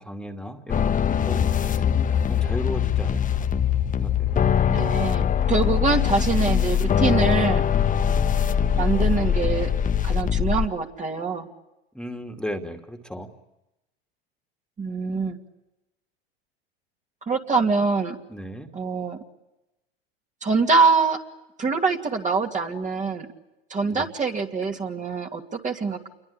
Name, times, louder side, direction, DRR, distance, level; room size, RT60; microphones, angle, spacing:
voice 1, 0.0-3.5 4.0-4.5 11.9-13.3 18.3-18.7 23.9-24.1, equal, 5° left, 5 dB, 2.6 m, -36 dB
sound 1, 0.7-10.7, left 8 dB, 25° left, 1.2 m, -22 dB
voice 2, 4.7-7.6 8.7-9.7 10.0-11.5 14.8-15.4 17.3-18.2 18.7-19.2 20.4-21.2 21.6-23.3 23.7-26.1, right 4 dB, 25° right, 2 dB, 2.6 m, -24 dB
28.5 x 23.0 x 8.6 m, 0.95 s
hypercardioid pair, 100°, 31 cm